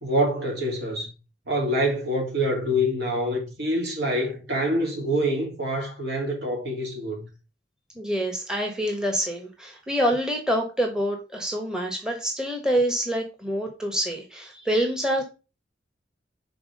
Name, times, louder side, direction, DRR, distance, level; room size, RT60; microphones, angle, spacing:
voice 1, 0.0-1.1 1.5-7.3, equal, 60° right, 2.8 m, -26 dB
voice 2, 7.9-15.2, equal, 5° right, 1.1 m, -26 dB
6.0 x 4.1 x 5.2 m
head